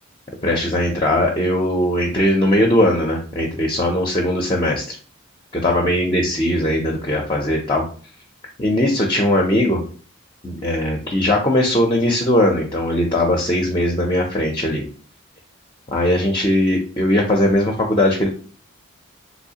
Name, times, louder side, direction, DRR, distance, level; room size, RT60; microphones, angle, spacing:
voice 1, 0.4-5.0 5.5-7.9 8.6-9.8 10.4-14.8 15.9-18.3, left 1 dB, 25° left, 1 dB, 0.4 m, -19 dB
3.1 x 3.0 x 2.7 m, 0.41 s
head